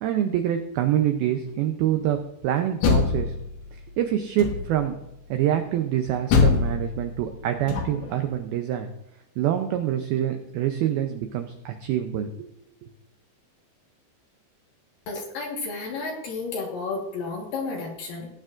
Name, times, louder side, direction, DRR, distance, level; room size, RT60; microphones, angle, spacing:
voice 1, 0.0-2.2 2.4-3.3 4.0-4.9 5.3-8.9 9.4-12.5 12.8-12.9, right 11 dB, 90° right, 6 dB, 2.1 m, -25 dB
Door, 2.6-3.8 4.4-4.9 6.3-8.2, left 5 dB, 85° left, 3.8 m, -24 dB
voice 2, 15.1-18.3, left 3 dB, 60° left, 0 dB, 2.7 m, -32 dB
18.5 x 9.0 x 2.5 m, 0.83 s
omnidirectional pair, 5.2 m